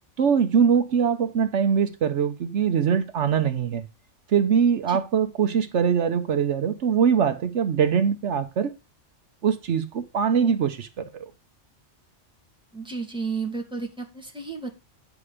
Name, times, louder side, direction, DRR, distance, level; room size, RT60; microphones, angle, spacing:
voice 1, 0.2-3.8 4.3-8.7 9.4-11.2, right 7 dB, 75° right, 1.2 m, -22 dB
voice 2, 12.7-14.7, right 4 dB, 5° right, 2.4 m, -32 dB
9.8 x 6.9 x 4.9 m
omnidirectional pair, 1.2 m